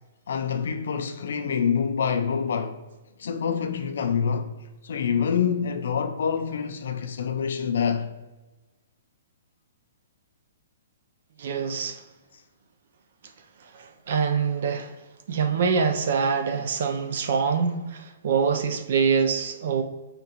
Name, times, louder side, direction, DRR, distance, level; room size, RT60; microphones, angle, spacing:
voice 1, 0.3-2.8 3.2-4.5 4.8-8.1, left 7 dB, 65° left, 0.4 m, -26 dB
voice 2, 11.4-12.0 13.7-14.9 15.3-19.8, right 6 dB, 50° right, 0.4 m, -25 dB
5.2 x 3.6 x 2.9 m
hypercardioid pair, 175°, 0 cm